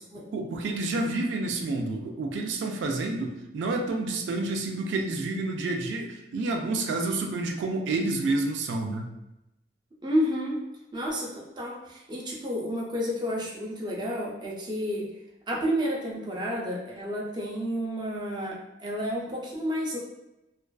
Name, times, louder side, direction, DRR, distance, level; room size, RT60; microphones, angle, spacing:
voice 1, 0.3-9.1, right 2 dB, 90° right, 2 dB, 0.3 m, -29 dB
voice 2, 10.0-10.6 10.9-15.1 15.5-20.0, equal, 25° right, -3 dB, 0.4 m, -30 dB
2.4 x 2.2 x 2.3 m, 0.92 s
head